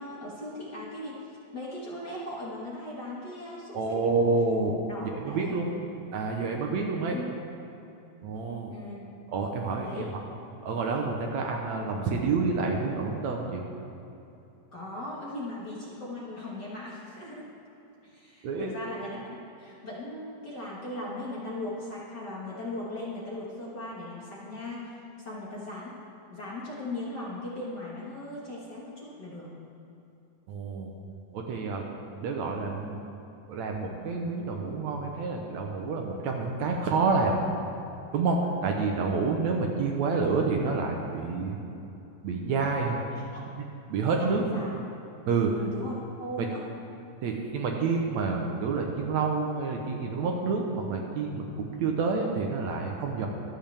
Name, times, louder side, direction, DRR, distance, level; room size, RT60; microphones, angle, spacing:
voice 1, 0.0-4.3 4.9-5.7 7.1-7.3 8.7-9.0 9.8-10.2 14.7-17.5 18.0-24.9 25.2-25.9 26.3-29.5 43.1-43.4 44.2-44.3 44.5-44.8 45.4-46.6, left 1 dB, 40° left, -6 dB, 1.7 m, -38 dB
voice 2, 3.7-5.7 6.1-7.2 8.2-8.7 9.3-10.2 10.6-13.6 18.4-18.7 30.5-30.9 31.3-31.8 32.2-33.0 33.5-37.5 38.1-41.6 42.2-43.0 43.6-43.7 43.9-44.4 45.3-45.5 46.4-46.5 47.2-53.3, right 4 dB, 70° right, 1 dB, 2.0 m, -28 dB
23.5 x 8.0 x 3.5 m, 2.8 s
omnidirectional pair, 3.7 m